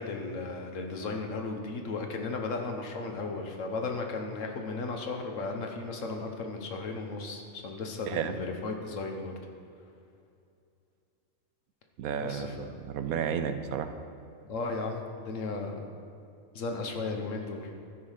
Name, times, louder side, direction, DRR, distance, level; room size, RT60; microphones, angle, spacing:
voice 1, 0.0-9.3 12.2-12.7 14.4-15.9 16.5-17.8, left 3 dB, 65° left, 3 dB, 1.3 m, -35 dB
voice 2, 12.0-13.9, right 8 dB, 80° right, 9 dB, 1.1 m, -32 dB
13.0 x 4.9 x 5.6 m, 2.5 s
omnidirectional pair, 1.5 m